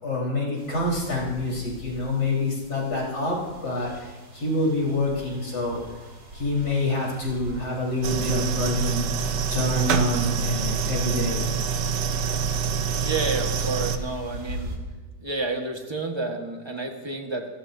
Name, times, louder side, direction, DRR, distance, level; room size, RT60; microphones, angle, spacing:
voice 1, 0.0-3.4 3.6-5.8 6.3-9.0 9.5-11.4, left 2 dB, 65° left, -4 dB, 4.9 m, -26 dB
sound 1, 0.6-14.8, equal, 60° right, 2.8 m, -42 dB
sound 2, 8.0-14.0, right 6 dB, 75° right, 1.4 m, -26 dB
voice 2, 12.9-14.8 15.2-17.5, right 3 dB, 15° right, 3 dB, 1.4 m, -30 dB
28.5 x 14.0 x 2.7 m, 1.2 s
omnidirectional pair, 1.9 m